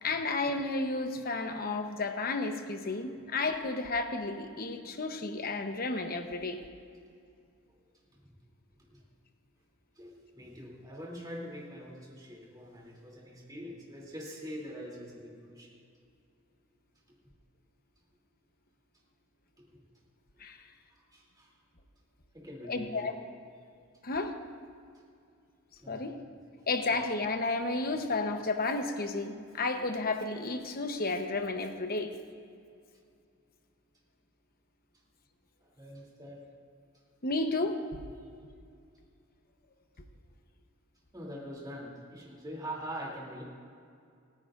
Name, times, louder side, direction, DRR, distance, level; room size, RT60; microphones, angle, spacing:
voice 1, 0.0-6.6 20.4-20.6 22.7-23.2 24.0-24.4 25.9-26.1 26.7-32.1 37.2-38.0, left 3 dB, 45° left, 6 dB, 0.9 m, -32 dB
voice 2, 9.9-15.7 20.9-21.5 22.3-23.2 25.8-26.0 35.6-36.4 41.1-43.4, equal, 20° right, -3 dB, 2.9 m, -44 dB
29.5 x 9.9 x 2.5 m, 2.3 s
head